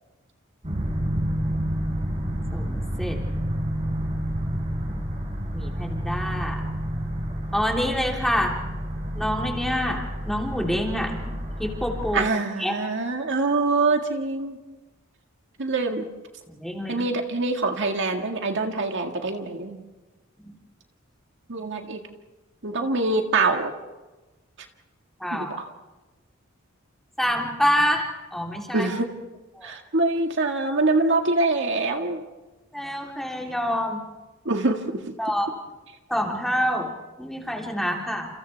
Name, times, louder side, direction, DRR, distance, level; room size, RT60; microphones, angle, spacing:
sound 1, 0.6-12.1, equal, 35° right, 5.3 m, -29 dB
voice 1, 2.5-3.2 5.5-6.6 7.5-8.6 9.1-11.2 11.6-12.3 12.6-12.8 16.5-17.0 20.4-20.5 25.2-25.5 27.2-28.9 29.6-29.7 32.7-34.0 35.2-35.5 36.1-36.9 37.2-38.3, equal, ahead, -1 dB, 3.4 m, -26 dB
voice 2, 12.1-14.6 15.6-16.1 16.9-19.8 21.5-22.0 22.6-23.7 25.3-25.7 28.7-29.1 29.6-32.2 34.5-34.8, right 3 dB, 60° right, 3 dB, 1.9 m, -24 dB
29.5 x 29.0 x 3.5 m, 1.1 s
head